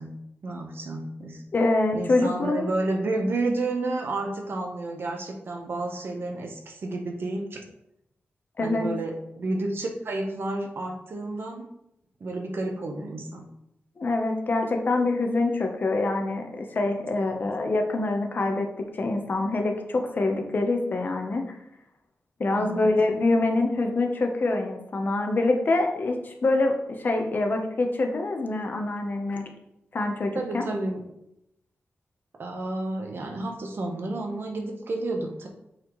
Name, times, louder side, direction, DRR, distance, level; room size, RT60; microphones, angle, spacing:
voice 1, 0.0-1.4 1.9-7.6 8.6-11.7 12.2-13.5 17.1-17.5 22.6-22.9 30.3-31.0 32.4-35.5, right 2 dB, 55° right, 3 dB, 1.0 m, -31 dB
voice 2, 1.5-2.7 8.6-8.9 14.0-21.4 22.4-29.4 29.9-30.6, left 2 dB, 45° left, 3 dB, 0.8 m, -25 dB
7.8 x 4.2 x 3.1 m, 0.81 s
wide cardioid pair, 160°, 4 cm